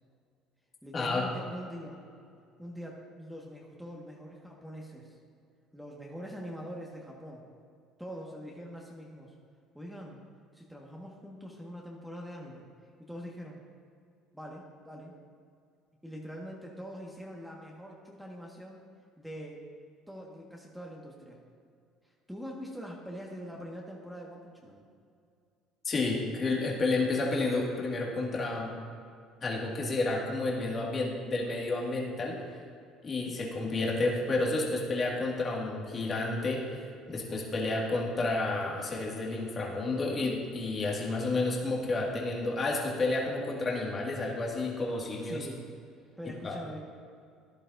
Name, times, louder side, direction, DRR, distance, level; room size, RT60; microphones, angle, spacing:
voice 1, 0.8-2.0 2.6-5.2 5.7-7.4 8.0-9.3 9.7-10.2 10.5-12.6 13.0-13.6 14.3-15.1 16.0-18.8 19.2-19.6 20.1-21.4 22.3-24.8 45.2-45.6 46.2-46.8, equal, ahead, -2 dB, 1.6 m, -43 dB
voice 2, 25.8-28.7 29.4-32.4 33.0-36.6 37.1-45.5 46.4-46.6, left 2 dB, 35° left, -2 dB, 2.0 m, -30 dB
13.5 x 11.0 x 2.6 m, 2.3 s
supercardioid pair, 75°, 0 cm